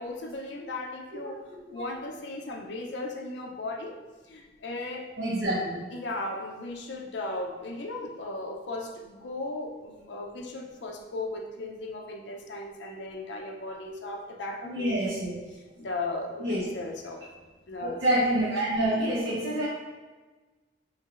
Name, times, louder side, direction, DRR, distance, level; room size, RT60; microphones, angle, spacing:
voice 1, 0.0-3.9 4.3-5.1 5.9-17.2 17.7-18.0, left 2 dB, 70° left, 1 dB, 0.5 m, -36 dB
voice 2, 5.2-5.8 14.6-15.3 16.4-16.6 17.8-19.7, right 1 dB, 85° right, -7 dB, 0.8 m, -27 dB
4.6 x 3.2 x 2.4 m, 1.3 s
head